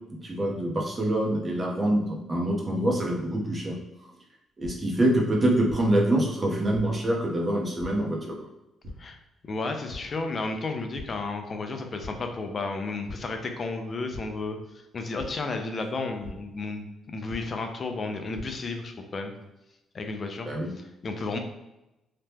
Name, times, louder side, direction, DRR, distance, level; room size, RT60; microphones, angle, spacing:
voice 1, 0.1-3.8 4.6-8.4 20.5-20.7, right 1 dB, 30° right, -1 dB, 0.8 m, -25 dB
sound 1, 4.6-4.7 5.7-5.8 6.7-6.8 7.8-7.9 8.8-8.9 9.9-10.0 10.4-10.6 10.9-11.0 12.0-12.1 13.0-13.2 14.1-14.2 15.2-15.3 16.2-16.3 17.3-17.4 18.1-18.4, left 2 dB, 50° right, 1.1 m, -39 dB
voice 2, 9.4-19.3 19.9-20.5 20.8-21.4, left 3 dB, 40° left, 5 dB, 0.4 m, -33 dB
2.8 x 2.1 x 3.4 m, 0.94 s
cardioid pair, 90°, 0 cm